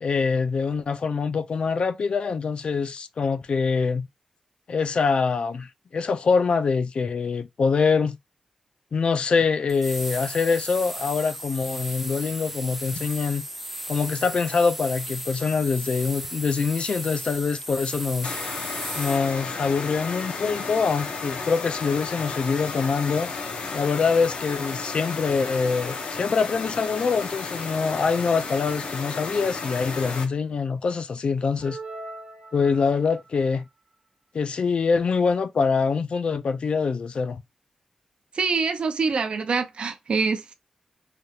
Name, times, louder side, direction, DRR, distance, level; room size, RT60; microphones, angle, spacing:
voice 1, 0.0-4.1 4.7-8.2 8.9-13.4 13.9-18.4 19.0-23.3 23.7-31.8 32.5-33.7 34.3-37.4, left 5 dB, 55° left, 0.4 m, -24 dB
sound 1, 9.7-19.3, right 1 dB, 10° right, 0.5 m, -35 dB
sound 2, 18.2-30.3, left 4 dB, 85° left, 0.8 m, -33 dB
sound 3, 31.6-33.3, right 2 dB, 80° right, 0.9 m, -40 dB
voice 2, 38.3-40.5, right 5 dB, 55° right, 0.5 m, -25 dB
3.3 x 2.3 x 2.8 m
wide cardioid pair, 125°, 2 cm